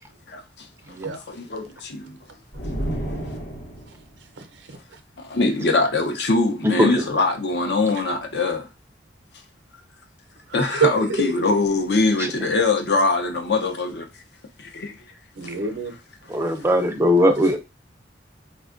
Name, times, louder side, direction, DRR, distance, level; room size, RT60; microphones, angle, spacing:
voice 1, 0.3-0.7 1.0-2.2 5.2-8.7 10.5-14.1 14.6-14.9 15.4-15.5, left 3 dB, 60° left, 0.6 m, -23 dB
voice 2, 0.8-1.3 2.3-2.6 3.9-4.0 4.2-5.0 7.9-8.0 10.5-11.3 15.3-16.0 16.5-16.7, right 5 dB, 80° right, 0.6 m, -28 dB
sound 1, 2.5-4.2, right 1 dB, 85° left, 0.9 m, -30 dB
voice 3, 6.6-7.0 12.2-12.3 16.3-17.6, left 1 dB, 15° right, 0.4 m, -19 dB
4.4 x 2.2 x 2.4 m
head